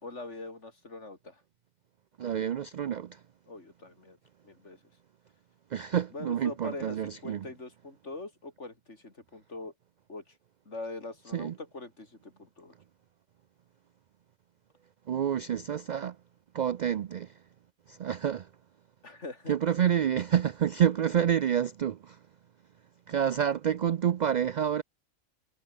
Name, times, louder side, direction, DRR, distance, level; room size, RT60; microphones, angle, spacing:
voice 1, 0.0-1.4 3.5-4.2 4.4-4.8 6.1-9.7 10.1-10.4 10.7-12.7 19.0-19.6, left 3 dB, 65° left, 4.2 m, -43 dB
voice 2, 2.2-3.2 5.7-7.5 11.3-11.5 15.1-16.2 16.5-17.4 17.9-18.5 19.5-22.2 23.1-24.8, right 9 dB, 75° right, 0.4 m, -28 dB
omnidirectional pair, 1.3 m